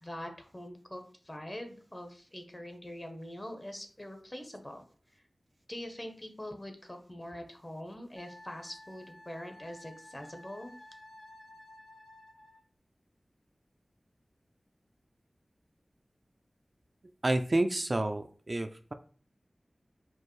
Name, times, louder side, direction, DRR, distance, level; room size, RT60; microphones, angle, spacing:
voice 1, 0.0-4.8 5.7-10.7, left 1 dB, 25° left, 5 dB, 0.8 m, -43 dB
Wind instrument woodwind instrument, 8.2-12.6, left 1 dB, 80° left, 0.8 m, -53 dB
voice 2, 17.2-18.9, right 2 dB, 45° right, 7 dB, 0.3 m, -29 dB
4.5 x 2.5 x 3.1 m, 0.41 s
wide cardioid pair, 60°, 0 cm